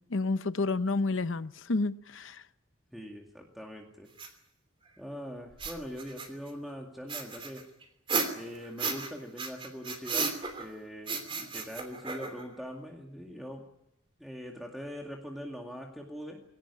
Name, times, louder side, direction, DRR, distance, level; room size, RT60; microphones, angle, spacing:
voice 1, 0.0-2.4, left 3 dB, 70° left, 0.8 m, -30 dB
voice 2, 2.9-4.1 5.0-7.7 8.3-13.7 14.2-16.4, equal, ahead, 2.2 m, -42 dB
sniffing sounds, 4.2-4.3 5.5-6.5 7.1-9.1 9.4-10.7 11.1-12.5, right 4 dB, 25° right, 2.9 m, -34 dB
21.5 x 18.0 x 9.9 m
head